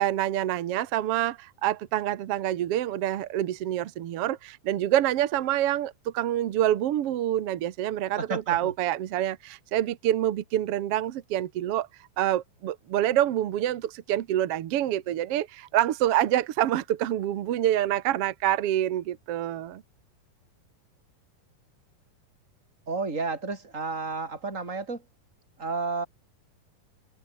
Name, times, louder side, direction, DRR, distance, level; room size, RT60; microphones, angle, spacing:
voice 1, 0.0-11.9 12.2-19.8, right 12 dB, 65° right, 1.4 m, -26 dB
voice 2, 8.2-8.7 22.9-25.0 25.6-26.1, right 4 dB, 20° right, 5.9 m, -31 dB
open air
omnidirectional pair, 4.2 m